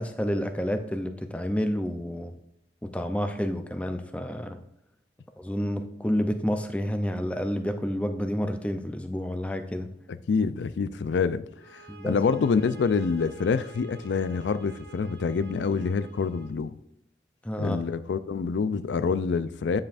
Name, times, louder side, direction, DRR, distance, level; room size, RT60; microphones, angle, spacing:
voice 1, 0.0-2.3 2.8-4.6 5.4-9.9 11.9-12.2 17.4-17.8, equal, 5° left, 0.5 m, -29 dB
voice 2, 10.3-16.7 17.6-19.8, left 5 dB, 85° left, 0.4 m, -26 dB
sound 1, 11.6-16.6, right 5 dB, 60° right, 1.3 m, -49 dB
9.4 x 7.3 x 2.5 m
head